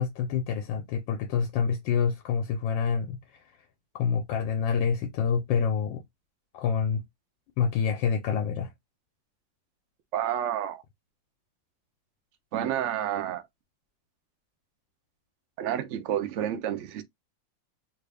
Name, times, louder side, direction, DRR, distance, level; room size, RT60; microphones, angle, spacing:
voice 1, 0.0-3.4 3.9-6.0 6.5-7.0 7.6-8.7, left 6 dB, 85° left, 1.3 m, -27 dB
voice 2, 10.1-10.8 12.5-13.4 15.6-17.0, right 10 dB, 85° right, 0.6 m, -29 dB
3.1 x 2.4 x 3.3 m
omnidirectional pair, 2.0 m